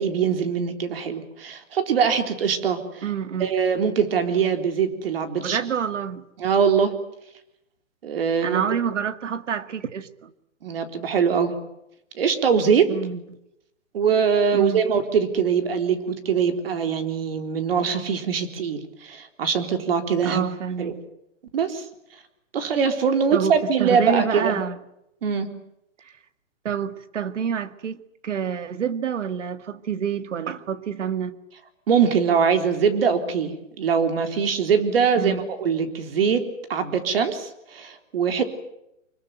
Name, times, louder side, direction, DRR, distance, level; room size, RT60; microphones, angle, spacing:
voice 1, 0.0-3.0 3.4-5.6 6.4-6.9 8.0-8.6 10.6-11.5 12.2-12.9 13.9-20.4 20.8-20.9 21.5-21.8 22.5-24.6 25.2-25.5 31.9-36.4 36.7-38.4, right 6 dB, 45° right, 8 dB, 3.8 m, -22 dB
voice 2, 3.0-3.5 5.4-6.3 8.4-10.3 12.9-13.4 14.5-14.8 20.2-21.0 23.3-24.8 26.6-31.4 35.2-35.5, right 7 dB, 65° right, 13 dB, 2.1 m, -28 dB
25.5 x 22.0 x 9.3 m, 0.83 s
hypercardioid pair, 165°, 39 cm